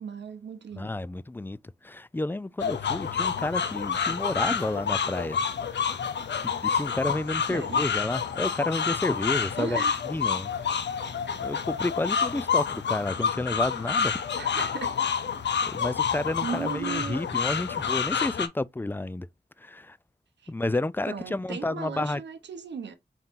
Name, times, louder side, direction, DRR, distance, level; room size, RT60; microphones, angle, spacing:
voice 1, 0.0-0.9 7.5-7.8 9.6-10.0 14.3-14.9 16.4-17.2 20.4-20.5 21.1-23.0, right 6 dB, 90° right, 0.7 m, -36 dB
voice 2, 0.7-6.0 6.4-9.8 10.1-10.8 11.4-14.2 15.7-19.3 19.6-20.0 20.5-22.2, left 2 dB, 10° left, 0.3 m, -31 dB
sound 1, 2.6-18.5, left 6 dB, 80° left, 0.5 m, -28 dB
4.3 x 3.5 x 2.5 m
cardioid pair, 45°, 18 cm